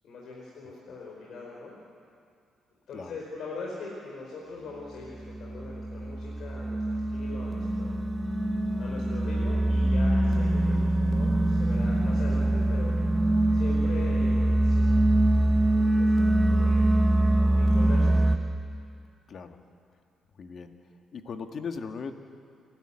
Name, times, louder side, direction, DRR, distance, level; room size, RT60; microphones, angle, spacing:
voice 1, 0.0-1.7 2.9-7.9 8.8-12.9 13.5-15.2 16.0-16.9 17.6-18.3, left 3 dB, 70° left, -4 dB, 4.9 m, -41 dB
sound 1, 5.2-18.4, right 1 dB, 15° right, 1.2 m, -24 dB
voice 2, 19.3-19.6 20.4-20.8 21.1-22.1, left 5 dB, 55° left, 6 dB, 1.7 m, -38 dB
28.5 x 12.5 x 10.0 m, 2.4 s
cardioid pair, 90°, 0 cm